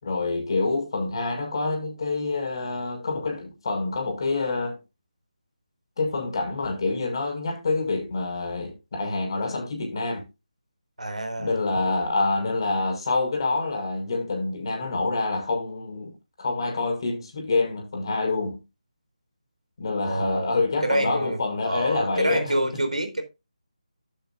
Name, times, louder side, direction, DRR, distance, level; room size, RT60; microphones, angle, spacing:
voice 1, 0.0-4.8 6.0-10.2 11.4-18.6 19.8-22.5, left 3 dB, 40° left, 6.0 m, -27 dB
voice 2, 11.0-11.6 20.1-20.5 20.8-21.4 21.6-23.2, right 1 dB, 75° right, 3.8 m, -27 dB
12.5 x 9.3 x 2.6 m
figure-of-eight pair, 155°, 4 cm